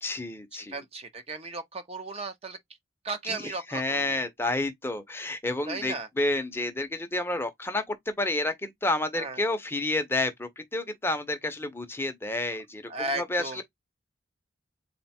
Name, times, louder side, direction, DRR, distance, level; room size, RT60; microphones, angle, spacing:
voice 1, 0.0-0.8 3.2-13.6, left 2 dB, 10° left, 0.6 m, -30 dB
voice 2, 0.5-2.6 3.0-4.2 5.7-6.1 9.1-9.4 12.9-13.6, right 3 dB, 35° right, 0.6 m, -35 dB
3.9 x 2.2 x 4.2 m
head